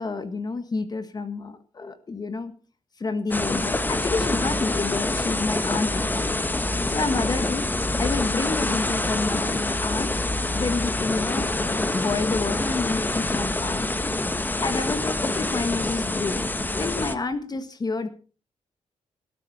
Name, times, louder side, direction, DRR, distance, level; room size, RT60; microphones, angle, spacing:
voice 1, 0.0-2.5 3.0-6.3 6.9-10.1 10.5-13.8 14.6-16.4 16.7-18.1, left 3 dB, 30° left, 10 dB, 1.6 m, -29 dB
sound 1, 3.3-17.2, left 2 dB, 15° left, 1.3 m, -26 dB
19.5 x 13.0 x 4.3 m, 0.37 s
cardioid pair, 120°, 12 cm